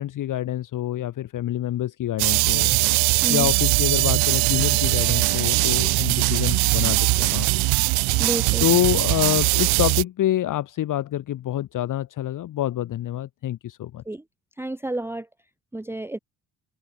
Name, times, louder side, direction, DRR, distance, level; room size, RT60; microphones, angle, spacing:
voice 1, 0.0-2.8 3.3-7.6 8.6-14.0, left 13 dB, 55° left, 0.9 m, -26 dB
sound 1, 2.2-10.0, right 25 dB, 80° right, 0.5 m, -21 dB
voice 2, 8.2-8.7 14.1-14.2 14.6-15.3 15.7-16.2, right 2 dB, 5° right, 0.8 m, -30 dB
supercardioid pair, 70°, 39 cm